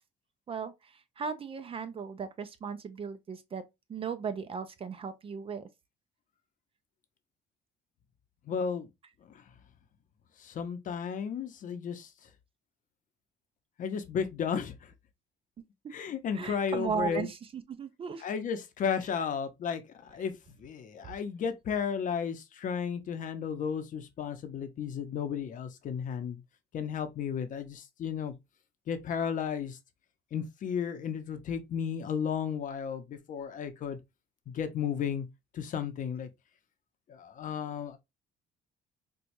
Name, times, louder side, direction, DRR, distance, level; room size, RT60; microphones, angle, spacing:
voice 1, 0.5-5.7 16.3-18.3, right 6 dB, 35° right, 0.5 m, -37 dB
voice 2, 8.5-8.9 9.3-9.4 10.4-12.1 13.8-14.9 15.9-17.3 18.2-20.3 20.6-26.4 26.7-28.3 28.9-29.8 30.3-34.0 34.5-35.3 35.5-36.3 37.1-38.0, left 7 dB, 50° left, 0.7 m, -33 dB
4.4 x 2.3 x 2.6 m
cardioid pair, 110°, 17 cm